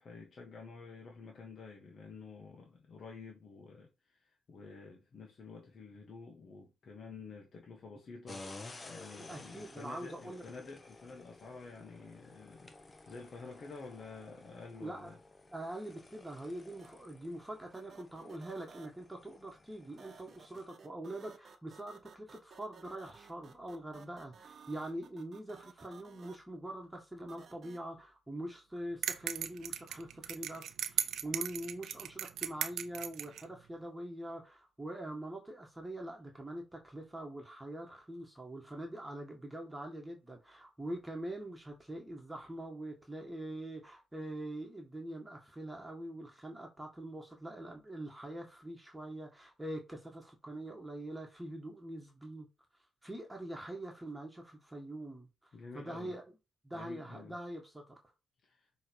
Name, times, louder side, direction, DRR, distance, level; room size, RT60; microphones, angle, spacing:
voice 1, 0.0-15.2 55.5-56.2 56.7-57.4 58.4-58.7, left 4 dB, 50° left, 1.5 m, -50 dB
sound 1, 8.3-20.7, left 2 dB, 25° left, 1.0 m, -54 dB
voice 2, 9.3-10.4 14.8-15.1 15.5-52.5 53.0-56.3 56.6-58.0, right 1 dB, 10° right, 1.7 m, -44 dB
sound 2, 16.8-16.9 17.7-18.9 20.0-26.4 27.3-27.8, right 6 dB, 50° right, 1.1 m, -56 dB
sound 3, 29.0-33.4, right 9 dB, 75° right, 0.7 m, -37 dB
6.3 x 3.4 x 4.6 m
cardioid pair, 90°, 0 cm